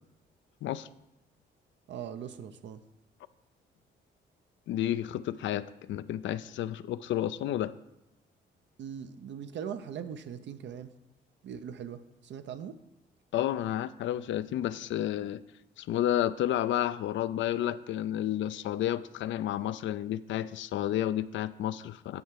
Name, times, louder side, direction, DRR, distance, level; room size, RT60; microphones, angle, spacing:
voice 1, 1.9-2.8 8.8-10.9 11.4-12.8, right 8 dB, 65° right, 10 dB, 0.6 m, -40 dB
voice 2, 4.7-7.8 13.3-15.4 15.8-22.2, left 12 dB, 70° left, 14 dB, 0.4 m, -31 dB
9.5 x 4.6 x 5.8 m, 0.92 s
cardioid pair, 90°, 20 cm